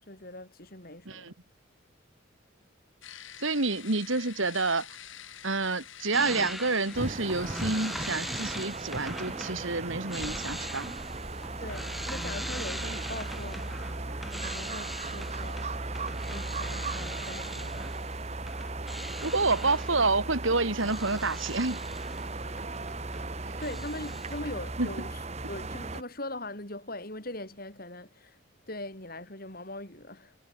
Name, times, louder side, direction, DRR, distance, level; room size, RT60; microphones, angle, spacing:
voice 1, 0.0-1.3 11.6-13.8 14.4-15.7 16.3-17.9 23.6-25.2 25.5-28.4 28.7-30.4, left 1 dB, 45° left, 5.8 m, -41 dB
sound 1, 3.0-8.6, left 10 dB, 70° left, 3.4 m, -47 dB
voice 2, 3.4-4.9 5.4-10.9 19.2-21.8 24.8-24.9, right 3 dB, 70° right, 3.0 m, -28 dB
sound 2, 6.1-23.3 23.6-24.4, equal, ahead, 1.2 m, -41 dB
sound 3, 6.9-26.0, right 2 dB, 30° right, 1.4 m, -37 dB
head